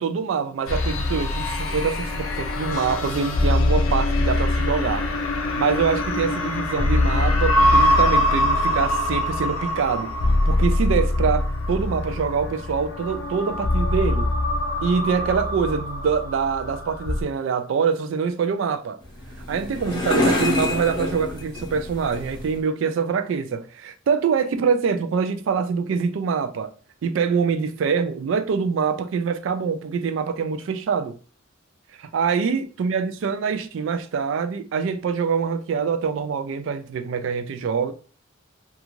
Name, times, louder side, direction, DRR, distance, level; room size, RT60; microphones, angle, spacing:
voice 1, 0.0-5.1 5.6-10.1 10.5-14.3 14.8-19.0 19.5-26.7 27.0-31.2 32.0-37.9, right 6 dB, 70° right, 0.3 m, -24 dB
sound 1, 0.7-17.2, left 1 dB, 85° left, 0.5 m, -23 dB
sound 2, 19.0-22.6, left 2 dB, 20° left, 0.7 m, -27 dB
2.5 x 2.4 x 2.9 m
head